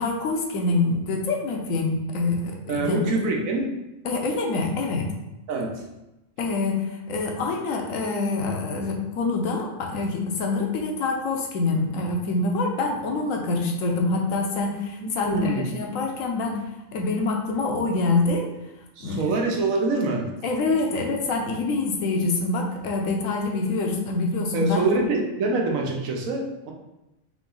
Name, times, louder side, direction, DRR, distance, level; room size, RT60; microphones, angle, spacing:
voice 1, 0.0-3.0 4.0-5.1 6.4-16.6 16.9-18.5 19.0-19.2 20.4-24.8, left 3 dB, 80° left, 1 dB, 1.1 m, -25 dB
voice 2, 2.7-3.7 5.5-5.8 15.0-15.7 19.0-20.3 24.5-26.7, right 3 dB, 85° right, 1 dB, 1.2 m, -25 dB
3.8 x 3.0 x 3.8 m, 0.96 s
omnidirectional pair, 1.4 m